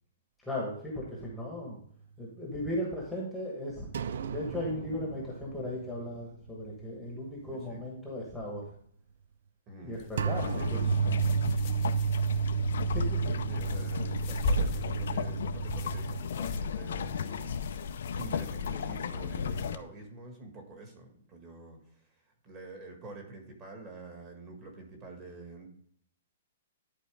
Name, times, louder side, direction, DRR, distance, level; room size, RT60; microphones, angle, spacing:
voice 1, 0.4-1.8 2.2-3.9 4.3-8.6 9.8-10.8 12.9-13.2, left 1 dB, ahead, -4 dB, 1.3 m, -36 dB
sound 1, 3.9-7.1 7.4-7.6 10.2-16.2, right 7 dB, 55° right, 0.4 m, -32 dB
voice 2, 7.4-7.8 9.7-10.1 10.5-11.0 13.2-17.7 18.1-25.7, right 2 dB, 20° right, 2 dB, 1.7 m, -47 dB
sound 2, 9.9-19.7, left 1 dB, 30° left, 0.9 m, -40 dB
sound 3, 10.3-19.8, left 6 dB, 65° left, 0.6 m, -35 dB
11.0 x 4.5 x 3.4 m, 0.63 s
hypercardioid pair, 175°, 0 cm